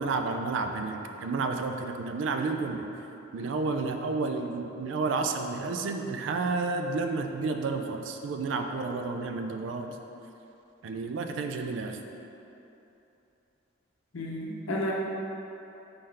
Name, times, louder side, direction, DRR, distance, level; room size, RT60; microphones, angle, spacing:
voice 1, 0.0-2.9 3.3-10.0 10.8-12.0, right 3 dB, 65° right, 5 dB, 0.3 m, -31 dB
voice 2, 14.1-14.9, left 1 dB, 80° left, -2 dB, 0.7 m, -32 dB
4.2 x 3.8 x 3.3 m, 2.9 s
head